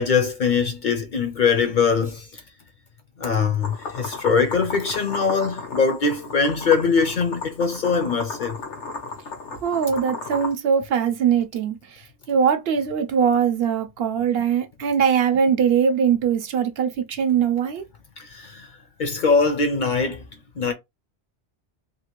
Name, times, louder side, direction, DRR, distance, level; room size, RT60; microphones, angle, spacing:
voice 1, 0.0-2.4 3.2-8.6 18.2-18.7 19.0-20.2 20.6-20.7, left 5 dB, 55° left, 0.6 m, -22 dB
sound 1, 3.6-10.5, left 3 dB, 90° left, 1.1 m, -35 dB
voice 2, 9.6-11.8 12.3-17.8, right 7 dB, 65° right, 0.7 m, -21 dB
2.8 x 2.4 x 2.9 m
omnidirectional pair, 1.2 m